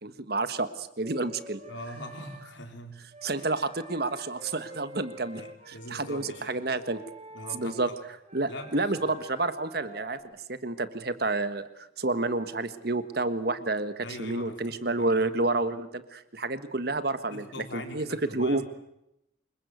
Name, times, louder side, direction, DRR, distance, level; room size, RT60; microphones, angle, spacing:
voice 1, 0.0-1.6 3.2-5.4 5.7-7.0 7.5-7.9 8.3-10.2 10.5-18.1 18.3-18.6, right 2 dB, 55° right, 12 dB, 1.5 m, -29 dB
Wind instrument woodwind instrument, 1.0-2.4 3.1-7.6 8.2-10.2, right 1 dB, 35° right, 4.4 m, -48 dB
voice 2, 1.7-3.0 3.4-3.5 5.3-6.5 7.3-7.9 8.5-8.8 14.0-15.1 15.5-15.7 17.3-18.7, left 1 dB, 75° left, 5 dB, 4.4 m, -42 dB
25.5 x 22.0 x 8.1 m, 0.81 s
head